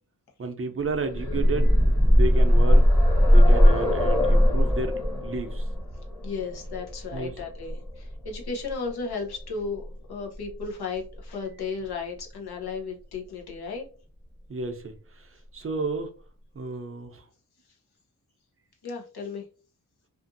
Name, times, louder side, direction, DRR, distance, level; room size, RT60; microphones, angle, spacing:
voice 1, 0.4-1.8 2.0-2.8 3.3-5.7 7.1-7.3 14.5-16.1 16.5-17.3, right 3 dB, 35° right, 7 dB, 0.5 m, -32 dB
sound 1, 0.9-8.7 9.8-9.9 10.3-10.4, equal, 10° left, 0.9 m, -20 dB
voice 2, 6.2-13.9 18.8-19.4, left 4 dB, 85° left, 1 dB, 0.8 m, -34 dB
2.5 x 2.4 x 2.6 m, 0.37 s
cardioid pair, 70°, 37 cm